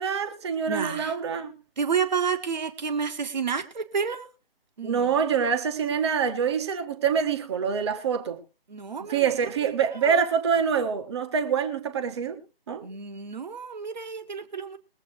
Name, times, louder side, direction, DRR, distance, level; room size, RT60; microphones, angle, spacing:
voice 1, 0.0-1.5 4.8-8.4 9.1-12.4 12.7-12.8, right 7 dB, 25° right, 1.5 m, -25 dB
voice 2, 0.7-1.2 1.8-4.3 4.8-5.2 8.7-9.3 9.8-10.2 12.8-14.8, right 6 dB, 45° right, 1.7 m, -30 dB
22.0 x 8.3 x 3.1 m
figure-of-eight pair, 150°, 30 cm